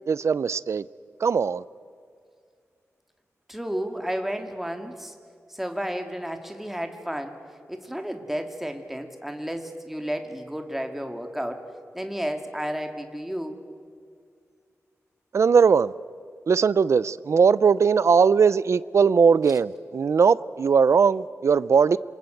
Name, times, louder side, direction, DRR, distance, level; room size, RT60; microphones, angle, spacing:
voice 1, 0.1-0.8 1.2-1.6 15.3-15.9 16.5-22.0, right 6 dB, 60° right, 0.6 m, -19 dB
voice 2, 3.5-5.1 5.5-7.4 7.7-11.7 11.9-13.6, equal, 5° right, 2.2 m, -32 dB
28.0 x 23.0 x 7.9 m
wide cardioid pair, 130°, 5 cm